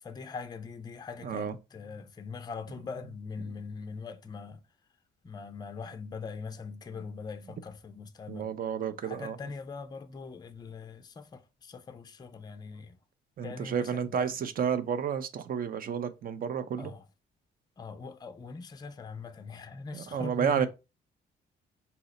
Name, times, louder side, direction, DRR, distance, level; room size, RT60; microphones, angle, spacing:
voice 1, 0.0-4.6 5.2-8.5 9.0-13.0 13.4-14.4 16.8-17.0 17.8-20.7, left 4 dB, 20° left, 0.4 m, -42 dB
voice 2, 1.2-1.6 8.3-9.4 13.4-16.9 19.9-20.7, right 8 dB, 45° right, 0.5 m, -31 dB
2.8 x 2.0 x 3.9 m
cardioid pair, 90°, 20 cm